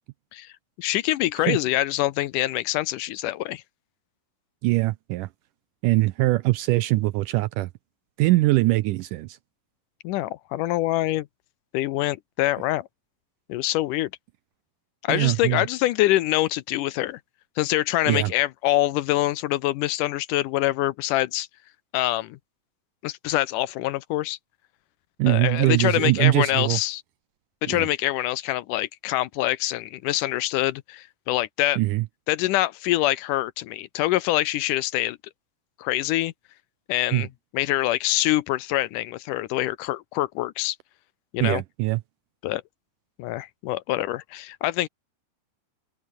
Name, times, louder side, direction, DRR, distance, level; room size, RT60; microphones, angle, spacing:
voice 1, 0.8-3.6 10.0-11.3 11.7-12.9 13.5-14.1 15.0-17.2 17.6-21.5 21.9-22.4 23.0-24.4 25.3-27.0 27.6-31.8 32.3-35.2 35.8-36.3 36.9-37.3 37.5-40.8 41.3-41.6 42.4-42.6 43.2-44.9, left 16 dB, 75° left, 2.0 m, -25 dB
voice 2, 4.6-5.3 5.8-7.7 8.2-9.4 15.1-15.7 18.1-18.3 25.2-26.8 27.7-27.9 31.8-32.1 37.1-37.3 41.4-42.0, right 19 dB, 80° right, 1.8 m, -22 dB
open air
omnidirectional pair, 4.3 m